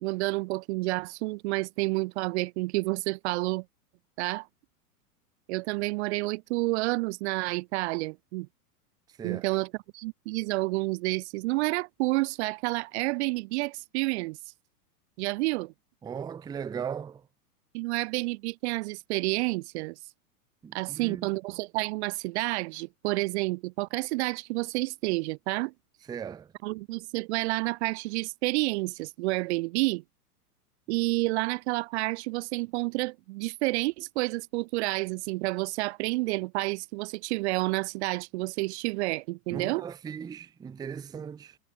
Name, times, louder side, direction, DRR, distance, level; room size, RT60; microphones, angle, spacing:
voice 1, 0.0-3.6 4.2-4.5 5.5-8.5 9.2-9.7 9.9-14.4 15.2-15.7 17.7-20.0 20.7-25.7 26.6-30.0 30.9-39.8, right 23 dB, 45° right, 0.6 m, -29 dB
voice 2, 16.0-17.3 20.6-21.3 26.1-26.5 39.5-41.6, right 7 dB, 10° right, 0.5 m, -38 dB
hypercardioid pair, 115°, 47 cm